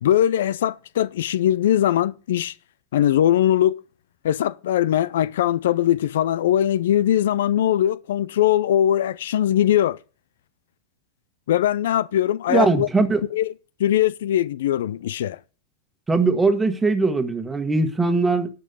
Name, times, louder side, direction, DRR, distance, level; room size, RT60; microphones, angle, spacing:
voice 1, 0.0-2.5 2.9-3.8 4.2-10.0 11.5-12.9 13.3-13.5 13.8-15.4, left 11 dB, 75° left, 0.4 m, -21 dB
voice 2, 12.5-13.2 16.1-18.5, right 3 dB, 10° right, 1.4 m, -20 dB
11.0 x 5.3 x 6.8 m
hypercardioid pair, 120°, 0 cm